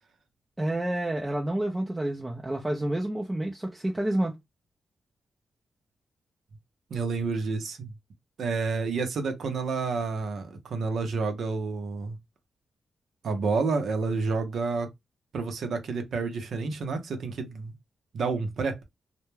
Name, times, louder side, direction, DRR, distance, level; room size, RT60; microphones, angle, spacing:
voice 1, 0.6-4.4, right 1 dB, 15° right, 0.4 m, -29 dB
voice 2, 6.9-7.9 8.4-12.2 13.2-14.9 15.3-17.7 18.1-18.8, right 4 dB, 70° right, 0.6 m, -29 dB
2.2 x 2.1 x 3.0 m
cardioid pair, 85°, 0 cm